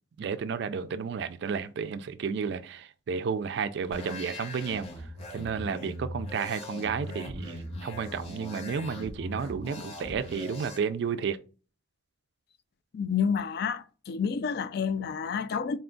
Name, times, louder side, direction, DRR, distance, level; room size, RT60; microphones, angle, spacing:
voice 1, 0.2-11.4, right 6 dB, 60° right, 0.3 m, -32 dB
sound 1, 3.9-10.8, left 1 dB, 30° left, 0.9 m, -40 dB
voice 2, 12.9-15.8, left 6 dB, 50° left, 0.3 m, -29 dB
4.2 x 2.3 x 3.8 m
head